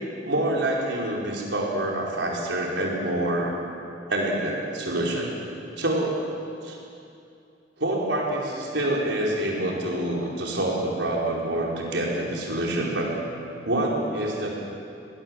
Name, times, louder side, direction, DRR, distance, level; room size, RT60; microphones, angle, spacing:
voice 1, 0.2-3.5 4.1-5.3 5.8-6.1 6.6-6.8 7.8-13.1 13.6-14.5, right 1 dB, 90° right, -2 dB, 4.7 m, -26 dB
22.0 x 19.5 x 7.5 m, 2.6 s
head